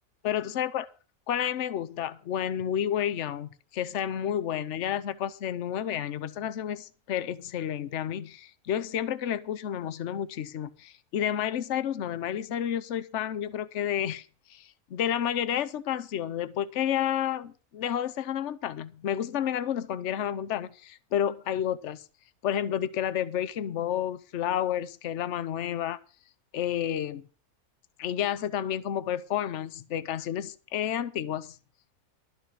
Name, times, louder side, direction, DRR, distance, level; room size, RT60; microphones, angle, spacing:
voice 1, 0.2-0.9 1.3-22.0 22.4-26.0 26.5-27.3 28.0-31.6, left 10 dB, 60° left, 1.0 m, -30 dB
12.5 x 5.8 x 7.9 m
omnidirectional pair, 1.5 m